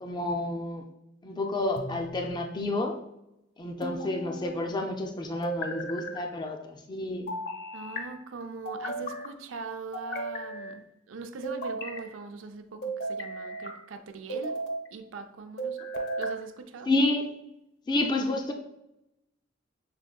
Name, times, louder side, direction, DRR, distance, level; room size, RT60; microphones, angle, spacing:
voice 1, 0.0-0.8 1.2-3.0 3.6-7.3 16.9-17.2 17.9-18.5, left 2 dB, 20° left, 3 dB, 0.4 m, -29 dB
sound 1, 1.8-2.4 3.8-4.6 5.4-6.2 7.3-8.0 8.6-9.3 9.9-10.8 11.4-12.1 12.8-13.7 14.3-14.9 15.6-16.4, right 1 dB, 55° left, 0.7 m, -35 dB
voice 2, 7.7-14.6 14.9-15.8 16.2-16.9, right 4 dB, 90° right, 7 dB, 0.5 m, -41 dB
6.2 x 3.6 x 2.3 m, 0.86 s
head